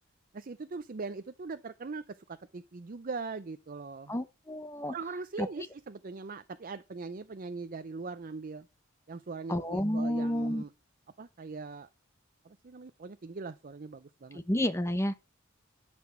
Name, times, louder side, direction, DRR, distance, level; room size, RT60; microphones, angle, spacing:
voice 1, 0.3-4.2 4.9-8.7 9.1-10.7 11.2-11.9 12.4-14.4, right 4 dB, 40° right, 0.5 m, -41 dB
voice 2, 4.1-4.9 5.4-5.5 9.5-10.6 14.3-15.1, left 1 dB, 15° left, 0.9 m, -30 dB
11.5 x 6.0 x 5.9 m
head